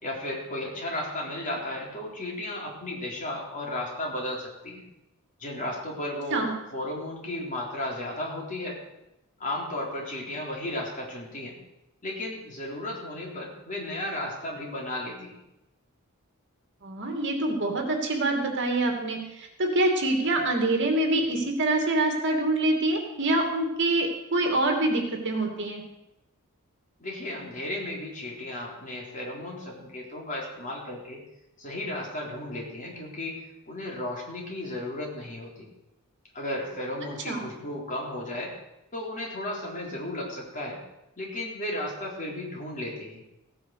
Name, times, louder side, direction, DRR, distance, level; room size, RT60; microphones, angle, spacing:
voice 1, 0.0-4.8 5.4-6.4 6.7-8.8 9.4-11.6 12.0-15.4 27.0-31.2 31.6-33.4 33.7-35.7 36.3-38.5 38.9-40.8 41.2-43.2, left 1 dB, 35° left, -2 dB, 3.8 m, -34 dB
voice 2, 16.8-19.2 19.6-25.8 37.3-37.4, right 2 dB, 55° right, 3 dB, 2.6 m, -25 dB
16.0 x 9.5 x 6.6 m, 0.92 s
head